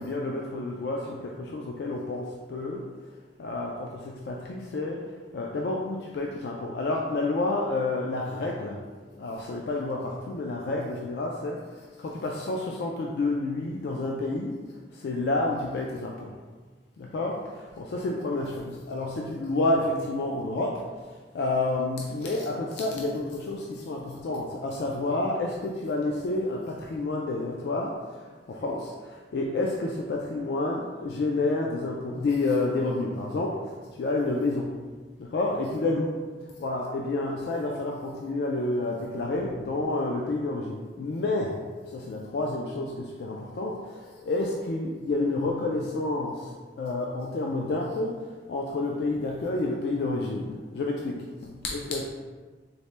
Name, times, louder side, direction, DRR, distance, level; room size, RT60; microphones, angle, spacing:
voice 1, 0.0-2.9 3.4-8.8 9.1-14.6 14.9-16.4 17.0-34.8 35.2-36.2 36.6-52.0, left 2 dB, 65° left, -1 dB, 0.3 m, -30 dB
4.1 x 2.1 x 3.2 m, 1.4 s
head